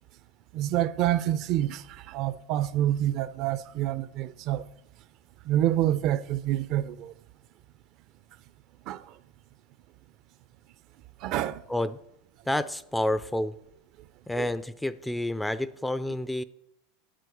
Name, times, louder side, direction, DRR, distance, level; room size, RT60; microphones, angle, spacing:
voice 1, 0.5-4.7 5.4-7.1 8.9-9.2 11.2-11.6 14.4-14.5, right 12 dB, 50° right, 0.5 m, -27 dB
voice 2, 12.5-13.5 14.3-16.4, left 1 dB, 5° left, 0.4 m, -29 dB
7.6 x 7.6 x 7.8 m
supercardioid pair, 120°, 0 cm